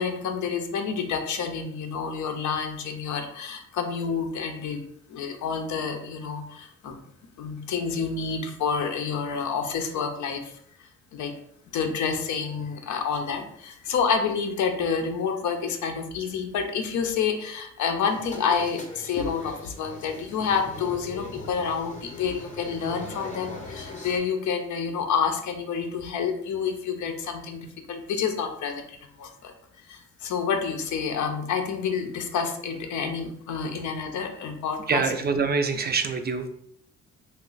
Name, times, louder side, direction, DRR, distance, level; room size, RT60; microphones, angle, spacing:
voice 1, 0.0-4.8 5.1-7.0 7.4-10.4 11.1-11.3 11.7-29.5 29.9-35.0, left 6 dB, 70° left, 5 dB, 0.7 m, -28 dB
sound 1, 18.1-24.2, left 2 dB, 25° left, 0.8 m, -41 dB
voice 2, 34.9-36.5, right 5 dB, 35° right, 7 dB, 0.4 m, -25 dB
3.1 x 2.2 x 3.8 m, 0.69 s
cardioid pair, 90°, 30 cm